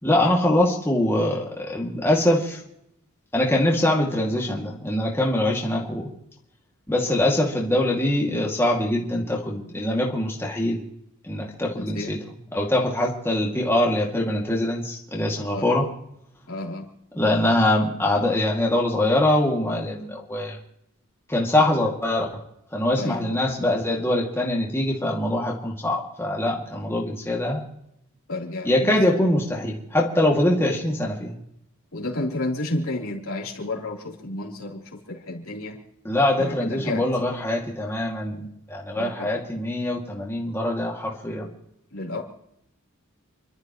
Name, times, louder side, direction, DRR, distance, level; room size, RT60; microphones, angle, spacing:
voice 1, 0.0-2.6 3.3-6.1 6.9-10.8 11.2-12.2 12.5-15.9 17.1-20.6 21.3-22.4 22.7-27.6 28.6-31.4 36.0-41.5, left 1 dB, 10° left, -2 dB, 2.3 m, -23 dB
voice 2, 11.7-12.1 15.5-15.7 16.5-16.9 23.0-23.4 28.3-28.9 31.9-35.7 36.4-37.0 38.9-39.3 41.9-42.2, left 2 dB, 70° left, -2 dB, 3.5 m, -31 dB
29.5 x 12.5 x 3.1 m, 0.75 s
head